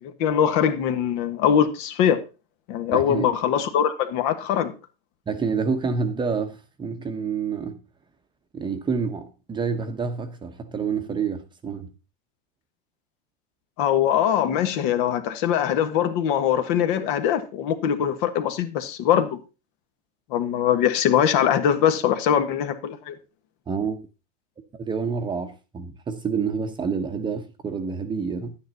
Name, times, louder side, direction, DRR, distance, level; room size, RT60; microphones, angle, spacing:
voice 1, 0.0-2.2 2.7-4.7 13.8-19.4 20.3-23.2, left 9 dB, 55° left, 1.5 m, -22 dB
voice 2, 2.9-3.3 5.3-7.8 8.5-11.9 23.7-24.0 24.7-28.6, right 5 dB, 15° right, 1.0 m, -28 dB
11.0 x 9.4 x 4.1 m
supercardioid pair, 140°, 30 cm